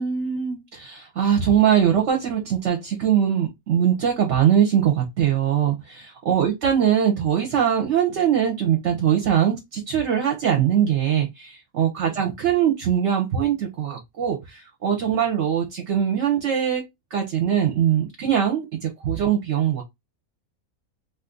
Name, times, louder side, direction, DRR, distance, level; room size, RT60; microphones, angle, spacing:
voice 1, 0.0-16.9 17.1-19.8, right 9 dB, 60° right, 0.8 m, -22 dB
2.6 x 2.4 x 3.6 m
omnidirectional pair, 1.6 m